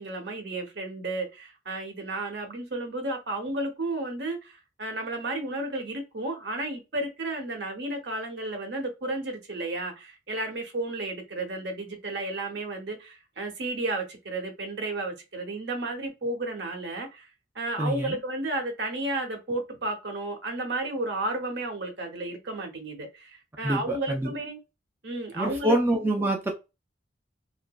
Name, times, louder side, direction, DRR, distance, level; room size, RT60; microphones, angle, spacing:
voice 1, 0.0-17.3 17.5-24.6 25.0-25.8, right 2 dB, 65° right, 0.7 m, -32 dB
voice 2, 17.8-18.2 23.6-24.3 25.4-26.5, right 1 dB, 10° right, 0.3 m, -26 dB
2.8 x 2.4 x 2.2 m
head